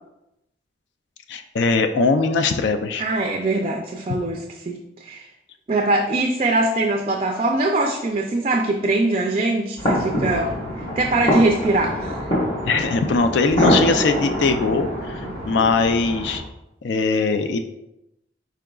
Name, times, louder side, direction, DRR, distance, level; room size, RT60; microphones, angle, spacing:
voice 1, 1.3-3.0 12.7-16.4 16.8-17.6, left 4 dB, 70° left, 8 dB, 0.4 m, -21 dB
voice 2, 3.0-5.3 5.7-12.2, right 2 dB, 35° right, 2 dB, 0.3 m, -22 dB
sound 1, 9.8-16.4, equal, 30° left, 1.2 m, -24 dB
4.9 x 4.5 x 2.3 m, 0.88 s
head